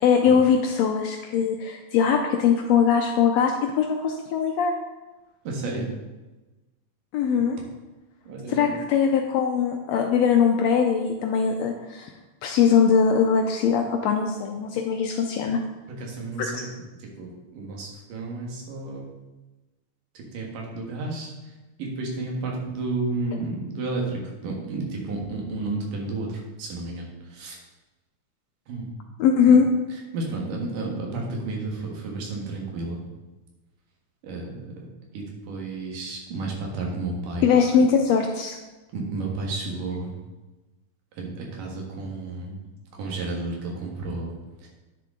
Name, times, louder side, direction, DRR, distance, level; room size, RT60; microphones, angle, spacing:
voice 1, 0.0-4.7 7.1-7.6 8.5-12.1 12.4-15.6 16.4-16.6 29.2-29.7 37.4-38.6, left 6 dB, 90° left, 3 dB, 1.5 m, -21 dB
voice 2, 5.4-5.8 8.3-8.7 15.9-16.7 17.2-19.1 20.3-21.3 21.8-27.1 27.3-27.6 28.7-28.9 29.5-29.6 30.1-33.0 34.2-37.5 38.9-40.1 41.2-42.6 43.0-44.3 44.6-44.7, right 3 dB, 85° right, -1 dB, 3.2 m, -32 dB
10.0 x 6.6 x 3.7 m, 1.1 s
omnidirectional pair, 3.6 m